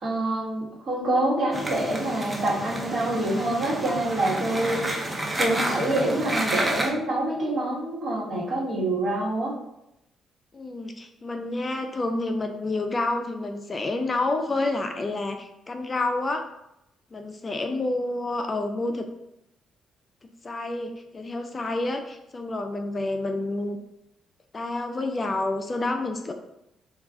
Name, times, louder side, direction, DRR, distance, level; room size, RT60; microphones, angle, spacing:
voice 1, 0.0-9.5, right 1 dB, 50° right, -5 dB, 1.2 m, -26 dB
sound 1, 1.5-6.9, right 1 dB, 20° right, 0.5 m, -30 dB
voice 2, 10.5-16.4 17.1-19.1 20.2-23.8 24.5-26.3, left 2 dB, 35° left, 5 dB, 0.3 m, -29 dB
2.3 x 2.2 x 3.7 m, 0.84 s
supercardioid pair, 65°, 0 cm